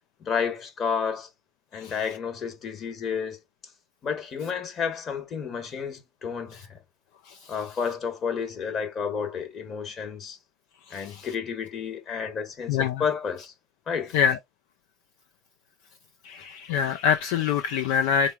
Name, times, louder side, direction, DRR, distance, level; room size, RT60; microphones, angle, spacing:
voice 1, 0.2-1.3 1.7-3.4 4.0-6.8 7.5-10.4 10.9-13.5 13.9-14.1, left 6 dB, 40° left, 1.3 m, -31 dB
voice 2, 10.9-11.3 12.7-13.0 14.1-14.4 16.2-18.3, left 7 dB, 65° left, 0.4 m, -25 dB
4.1 x 3.5 x 2.3 m
figure-of-eight pair, 65°, 0 cm